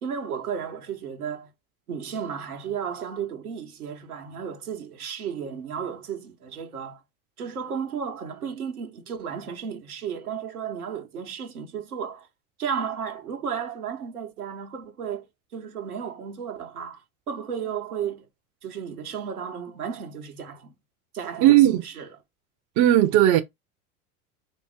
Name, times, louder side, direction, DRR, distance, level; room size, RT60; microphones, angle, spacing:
voice 1, 0.0-1.5 1.9-7.0 7.4-12.3 12.6-15.2 15.5-17.0 17.3-18.3 18.6-20.7 21.1-22.1, right 7 dB, 80° right, 1.3 m, -33 dB
voice 2, 21.4-21.8 22.8-23.4, right 13 dB, 40° right, 0.8 m, -16 dB
5.2 x 2.1 x 4.7 m
hypercardioid pair, 75°, 44 cm